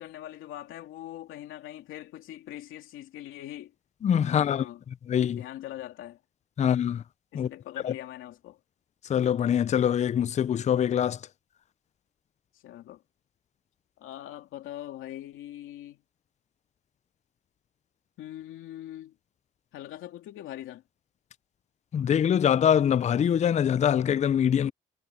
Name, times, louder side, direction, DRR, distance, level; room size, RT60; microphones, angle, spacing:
voice 1, 0.0-3.7 4.2-4.8 5.4-6.2 7.3-8.6 12.5-13.0 14.0-16.0 18.2-19.1 19.7-20.8, left 13 dB, 85° left, 2.8 m, -42 dB
voice 2, 4.0-4.7 5.1-5.4 6.6-7.0 7.3-7.5 7.8-7.9 9.1-11.2 21.9-24.7, left 9 dB, 35° left, 0.4 m, -24 dB
cardioid pair, 90°, 20 cm